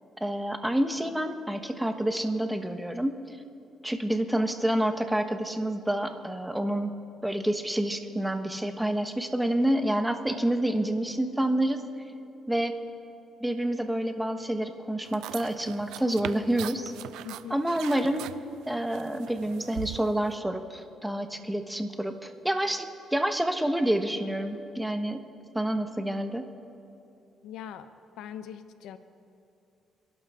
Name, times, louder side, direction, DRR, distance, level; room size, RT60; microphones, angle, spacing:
voice 1, 0.2-3.2 3.8-6.9 7.2-11.8 12.5-12.7 13.4-16.9 17.5-18.3 18.7-25.2 25.5-26.5, right 1 dB, 5° right, 7 dB, 1.3 m, -28 dB
sound 1, 15.0-20.4, right 13 dB, 90° right, 0.4 m, -41 dB
voice 2, 17.2-17.6 27.4-27.9 28.2-29.0, left 9 dB, 85° left, 11 dB, 0.7 m, -41 dB
29.0 x 11.5 x 3.8 m, 2.7 s
cardioid pair, 90°, 0 cm